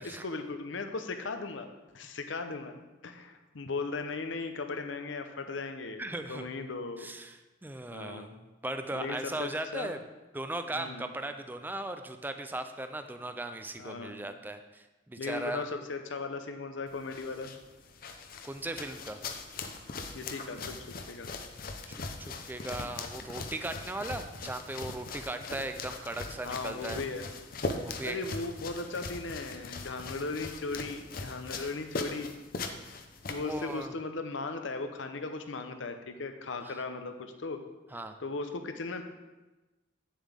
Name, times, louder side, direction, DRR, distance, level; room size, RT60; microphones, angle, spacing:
voice 1, 0.0-1.7 1.9-6.0 6.3-7.1 7.9-8.4 8.9-9.9 10.7-11.1 13.8-14.2 15.2-17.5 20.1-20.8 21.1-21.3 26.4-27.3 27.7-32.4 33.3-37.6 38.2-39.0, left 3 dB, 85° left, 7 dB, 0.8 m, -37 dB
voice 2, 6.0-6.5 7.0-8.3 8.6-10.0 10.3-15.6 18.4-19.2 21.9-27.0 27.8-28.2 33.4-33.9 36.6-36.8 37.9-38.2, right 2 dB, 10° right, 7 dB, 0.4 m, -38 dB
sound 1, 16.9-33.8, left 3 dB, 50° left, 0.7 m, -40 dB
9.3 x 7.2 x 3.5 m, 1.1 s
head